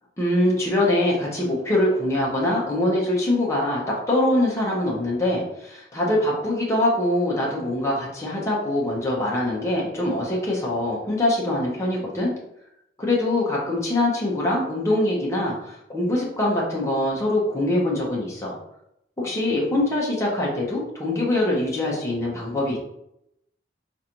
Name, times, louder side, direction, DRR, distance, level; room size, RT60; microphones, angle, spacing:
voice 1, 0.2-12.3 13.0-18.6 19.2-22.8, left 1 dB, 15° left, -4 dB, 0.8 m, -23 dB
4.8 x 2.5 x 2.9 m, 0.81 s
head